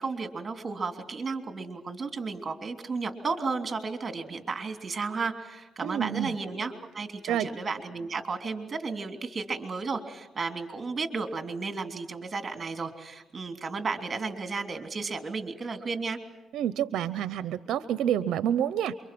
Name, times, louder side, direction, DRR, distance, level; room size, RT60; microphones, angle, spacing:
voice 1, 0.0-16.2, right 4 dB, 30° right, 6 dB, 3.2 m, -33 dB
voice 2, 5.8-6.3 7.3-7.5 16.5-18.9, right 10 dB, 80° right, 14 dB, 0.7 m, -28 dB
28.5 x 24.0 x 6.1 m, 1.1 s
cardioid pair, 90°, 0 cm